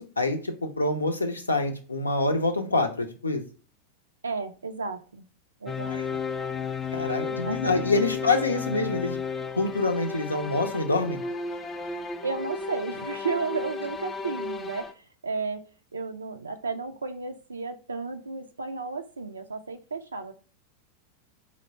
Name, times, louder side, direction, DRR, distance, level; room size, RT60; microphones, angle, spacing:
voice 1, 0.0-3.4 5.9-6.2 6.9-9.2 9.6-11.2, left 3 dB, 80° left, 7 dB, 0.6 m, -26 dB
voice 2, 4.2-5.3 5.6-6.0 7.2-8.1 12.2-15.7 15.9-20.3, right 4 dB, 75° right, 6 dB, 0.3 m, -33 dB
sound 1, 5.7-14.9, left 5 dB, 20° left, 0.4 m, -33 dB
4.4 x 2.1 x 4.1 m, 0.38 s
figure-of-eight pair, 90°, 0 cm